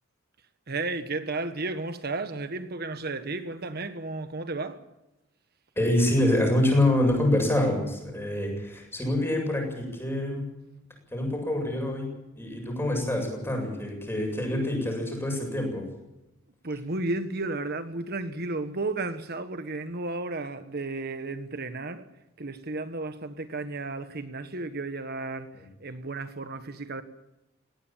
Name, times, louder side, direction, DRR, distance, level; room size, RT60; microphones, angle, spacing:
voice 1, 0.7-4.8 16.6-22.1 22.4-27.0, right 2 dB, 50° right, 1.4 m, -33 dB
voice 2, 5.8-10.5 11.1-15.8 25.5-25.6, left 1 dB, 10° left, 7.5 m, -26 dB
20.0 x 17.5 x 8.8 m
head